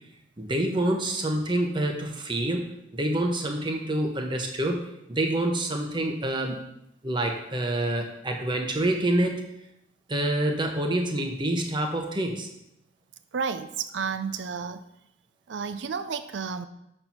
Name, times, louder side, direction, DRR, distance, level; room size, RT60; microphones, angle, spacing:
voice 1, 0.4-2.7 2.9-4.8 5.1-6.6 7.0-9.4 10.1-12.5, right 1 dB, 25° right, 3 dB, 0.9 m, -27 dB
voice 2, 13.3-14.8 15.5-16.7, right 5 dB, 70° right, 11 dB, 0.5 m, -31 dB
6.7 x 4.4 x 5.8 m, 0.81 s
head